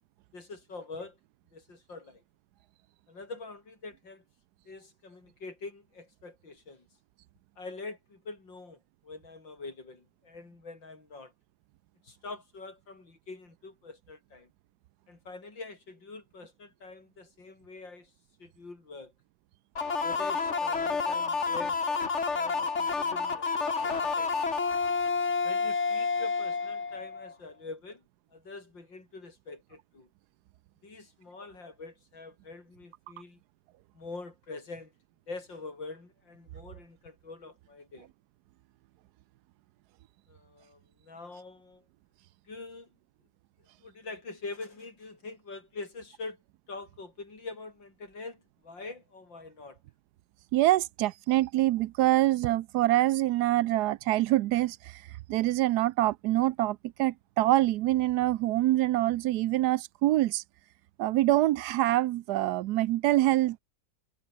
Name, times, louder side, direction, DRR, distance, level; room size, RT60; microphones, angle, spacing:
voice 1, 0.3-1.2 1.5-2.2 3.1-4.2 4.7-6.9 7.6-11.3 12.0-14.5 15.1-18.1 18.4-19.1 20.0-24.5 25.4-28.1 28.3-30.1 30.8-33.4 33.9-34.9 35.3-38.1 40.3-41.8 42.4-42.9 43.8-46.4 46.7-49.8, left 3 dB, 90° left, 5.6 m, -45 dB
sound 1, 19.8-27.3, left 4 dB, 40° left, 2.2 m, -29 dB
voice 2, 50.5-55.0 55.3-60.4 61.0-63.6, right 15 dB, 70° right, 1.0 m, -25 dB
omnidirectional pair, 2.0 m